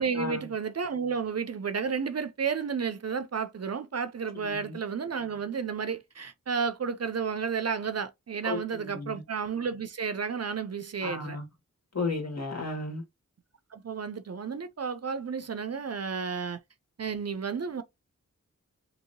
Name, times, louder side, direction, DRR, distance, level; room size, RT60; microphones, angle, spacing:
voice 1, 0.0-11.4 13.7-16.6 17.0-17.8, right 6 dB, 50° right, 0.4 m, -32 dB
voice 2, 4.4-4.8 8.4-9.2 11.0-11.4 11.9-13.0, left 3 dB, 55° left, 1.7 m, -34 dB
2.9 x 2.8 x 2.7 m
wide cardioid pair, 65°, 33 cm